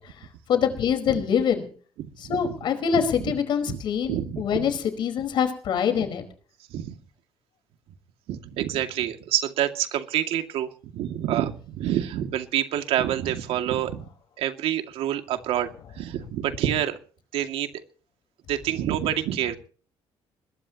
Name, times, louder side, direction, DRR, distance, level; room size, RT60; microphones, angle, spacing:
voice 1, 0.5-1.7 2.3-6.2, left 7 dB, 50° left, 7 dB, 4.8 m, -24 dB
voice 2, 2.0-2.6 2.9-3.3 3.7-3.8 4.1-4.7 6.7-7.0 8.3-14.1 14.4-17.0 17.3-17.7 18.5-19.6, right 11 dB, 75° right, 6 dB, 2.4 m, -27 dB
22.0 x 21.5 x 3.0 m, 0.43 s
cardioid pair, 170°, 10 cm